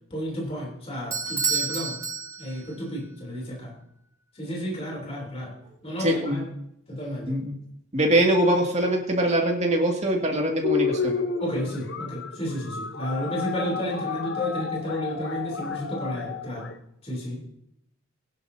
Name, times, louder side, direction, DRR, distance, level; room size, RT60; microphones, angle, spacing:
voice 1, 0.1-2.0 2.4-3.7 4.3-5.5 5.8-6.5 6.9-7.4 11.4-16.7 17.0-17.5, equal, 25° left, -1 dB, 3.3 m, -32 dB
Bell / Doorbell, 1.1-2.8, right 5 dB, 15° right, 1.0 m, -29 dB
voice 2, 6.0-6.4 7.3-7.5 7.9-11.1, right 1 dB, 30° right, 0 dB, 2.3 m, -23 dB
sound 1, 10.6-16.7, left 5 dB, 50° left, 0.9 m, -31 dB
21.5 x 10.5 x 2.8 m, 0.78 s
head